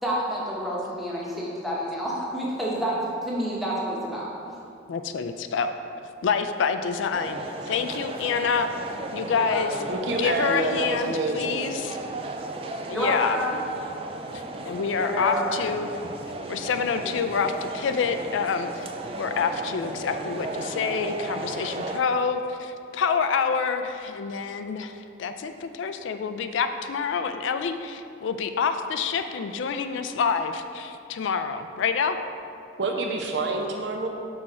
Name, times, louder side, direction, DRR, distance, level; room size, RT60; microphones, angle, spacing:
voice 1, 0.0-4.3 9.3-9.8 12.9-13.6 15.0-15.4, equal, ahead, -6 dB, 1.0 m, -29 dB
voice 2, 4.9-5.7 6.2-8.7 9.1-9.8 10.2-12.0 12.9-13.4 14.6-15.9 16.5-18.9 19.2-32.2, left 5 dB, 75° left, 8 dB, 0.3 m, -27 dB
sound 1, 7.1-22.0, right 2 dB, 30° right, 0.3 m, -35 dB
voice 3, 9.9-11.7 32.8-34.1, right 2 dB, 65° right, 2 dB, 0.7 m, -27 dB
6.2 x 4.3 x 4.9 m, 2.6 s
head